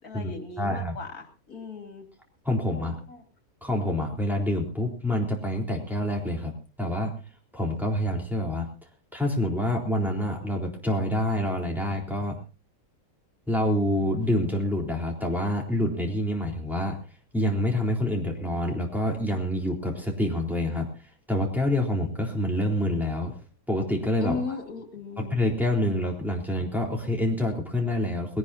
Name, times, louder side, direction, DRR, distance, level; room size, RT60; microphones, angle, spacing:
voice 1, 0.0-2.1 2.7-3.2 24.2-25.3, left 4 dB, 75° left, 5 dB, 3.2 m, -37 dB
voice 2, 0.6-1.0 2.4-3.0 3.6-6.5 6.8-7.2 7.5-8.7 9.1-12.4 13.5-17.0 17.3-20.9 21.3-23.3 23.7-24.4 25.2-28.4, left 1 dB, ahead, -1 dB, 4.0 m, -27 dB
21.0 x 18.0 x 2.8 m, 0.33 s
omnidirectional pair, 1.6 m